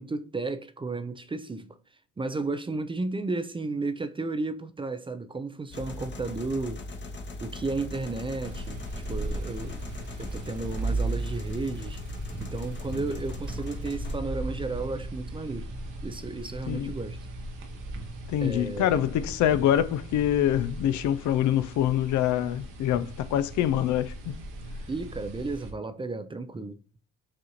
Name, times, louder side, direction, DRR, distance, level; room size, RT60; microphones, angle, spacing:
voice 1, 0.0-1.7 2.2-6.8 7.4-8.8 9.1-9.8 10.2-12.0 12.4-17.2 18.4-19.0 24.9-26.8, right 3 dB, 15° right, 0.4 m, -33 dB
sound 1, 5.7-14.2, left 2 dB, 40° left, 0.9 m, -39 dB
sound 2, 8.4-25.7, right 2 dB, 85° right, 1.1 m, -37 dB
voice 2, 18.3-24.4, left 11 dB, 75° left, 0.4 m, -25 dB
6.4 x 2.5 x 2.9 m
cardioid pair, 90°, 30 cm